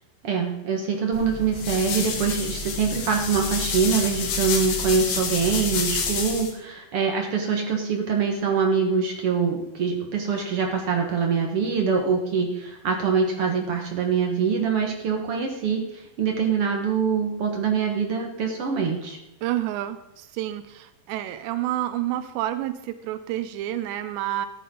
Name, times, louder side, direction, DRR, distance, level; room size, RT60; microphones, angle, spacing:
voice 1, 0.2-19.2, right 6 dB, 60° right, 2 dB, 1.5 m, -24 dB
sound 1, 1.1-6.5, left 5 dB, 85° left, 4.1 m, -28 dB
voice 2, 19.4-24.5, right 13 dB, 85° right, 10 dB, 2.9 m, -29 dB
14.0 x 11.0 x 3.8 m, 0.93 s
omnidirectional pair, 4.9 m